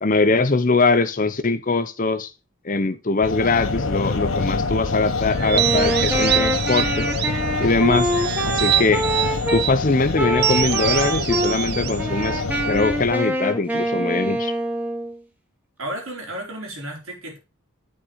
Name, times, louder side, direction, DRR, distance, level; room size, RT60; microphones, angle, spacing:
voice 1, 0.0-2.3 2.6-7.1 7.6-8.1 8.4-9.0 9.5-14.5, left 3 dB, 40° left, 0.7 m, -21 dB
sound 1, 3.2-13.1, left 3 dB, 80° left, 1.0 m, -26 dB
sound 2, 5.4-7.5 7.9-9.8 10.4-12.9, right 13 dB, 50° right, 0.4 m, -25 dB
Wind instrument woodwind instrument, 5.5-9.7 10.2-11.6 12.0-15.2, equal, 5° right, 1.2 m, -25 dB
voice 2, 15.8-17.4, right 1 dB, 75° right, 3.6 m, -33 dB
8.7 x 4.4 x 5.0 m
head